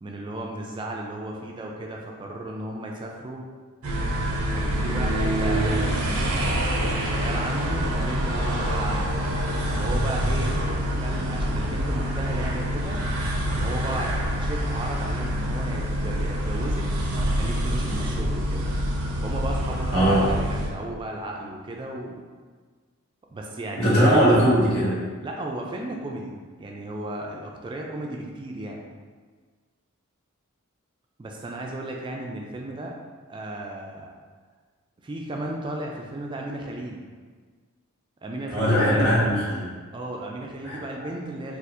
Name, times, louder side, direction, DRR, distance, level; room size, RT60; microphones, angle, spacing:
voice 1, 0.0-3.4 4.5-6.5 6.8-9.2 9.8-10.5 11.0-13.0 13.6-16.9 17.2-18.7 19.2-22.2 23.3-24.4 25.2-28.8 31.2-32.9 33.3-34.1 35.0-37.0 38.2-39.2 39.9-41.6, right 1 dB, 20° right, 0 dB, 0.3 m, -34 dB
sound 1, 3.8-20.7, equal, 85° right, 0.5 m, -26 dB
voice 2, 19.9-20.3 23.8-25.0 38.5-39.6 40.6-40.8, equal, 80° left, -9 dB, 1.5 m, -20 dB
4.2 x 2.4 x 2.5 m, 1.5 s
head